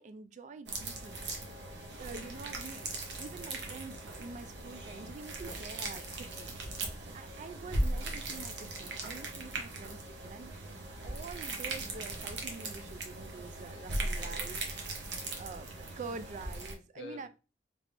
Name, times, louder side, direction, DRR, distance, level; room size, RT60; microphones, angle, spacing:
voice 1, 0.0-1.2 2.0-6.6 7.0-14.6 15.4-17.3, right 4 dB, 45° right, 0.3 m, -46 dB
sound 1, 0.7-16.7, right 2 dB, 70° right, 0.8 m, -39 dB
voice 2, 1.1-2.0 10.9-11.1 13.7-14.5 16.9-17.3, left 2 dB, 70° left, 0.7 m, -53 dB
3.3 x 3.2 x 2.5 m
head